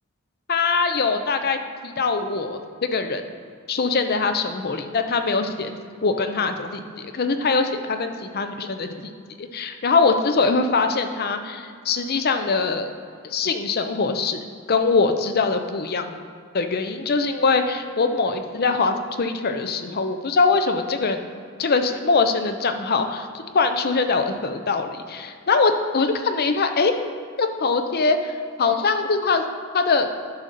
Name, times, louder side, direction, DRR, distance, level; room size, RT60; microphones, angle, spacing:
voice 1, 0.5-1.6 1.8-3.2 3.7-9.1 9.5-12.9 13.3-14.4 14.7-16.1 16.5-21.3 21.6-23.3 23.5-27.0 27.4-28.3 28.6-29.4 29.7-30.1, left 4 dB, 45° left, 7 dB, 0.7 m, -22 dB
11.0 x 4.0 x 6.7 m, 2.2 s
head